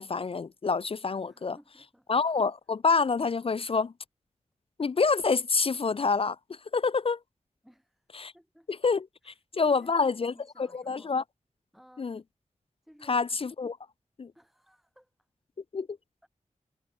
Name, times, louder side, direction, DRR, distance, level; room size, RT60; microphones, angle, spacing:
voice 1, 0.0-1.6 2.1-3.9 4.8-7.2 8.1-8.3 8.8-11.2 12.0-12.2 13.1-13.8 14.2-14.3 15.7-16.0, left 4 dB, 45° left, 0.4 m, -27 dB
voice 2, 1.2-2.1 7.6-8.1 8.3-8.7 9.2-11.2 11.7-12.1 12.8-13.3 14.3-15.1 16.2-16.3, equal, ahead, 4.8 m, -57 dB
wide cardioid pair, 75°, 13 cm